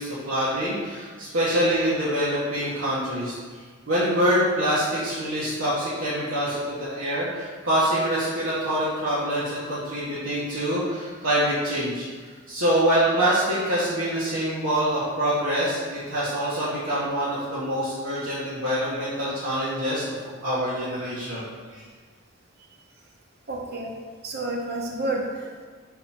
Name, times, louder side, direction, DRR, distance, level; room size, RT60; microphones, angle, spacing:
voice 1, 0.0-3.3 3.9-12.1 12.5-20.0 20.4-21.8, equal, 85° right, -10 dB, 1.4 m, -25 dB
voice 2, 23.5-23.9 24.2-25.7, right 2 dB, 50° right, 0 dB, 0.9 m, -30 dB
5.6 x 4.2 x 4.3 m, 1.5 s
head